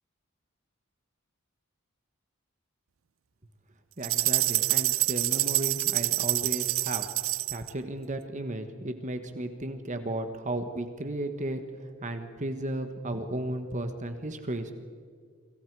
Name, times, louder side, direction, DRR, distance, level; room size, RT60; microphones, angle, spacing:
voice 1, 4.0-7.1 7.5-14.7, right 1 dB, 35° right, 7 dB, 1.4 m, -34 dB
sound 1, 4.0-7.7, right 18 dB, 75° right, 0.6 m, -27 dB
28.5 x 25.5 x 4.8 m, 2.1 s
head